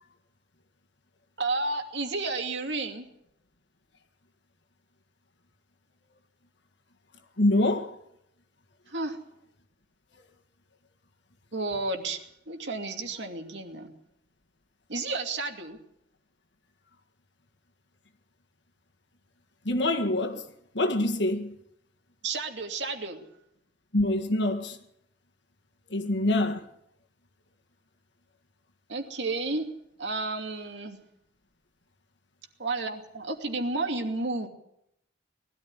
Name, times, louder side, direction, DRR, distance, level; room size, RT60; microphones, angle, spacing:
voice 1, 1.4-3.0 8.9-9.2 11.5-13.9 14.9-15.8 22.2-23.2 28.9-29.6 30.0-31.0 32.6-34.5, right 3 dB, 65° right, 2.6 m, -32 dB
voice 2, 7.4-8.0 19.7-20.5 20.7-21.5 23.9-24.8 25.9-26.6, left 1 dB, 70° left, 1.9 m, -25 dB
20.5 x 13.0 x 9.8 m
head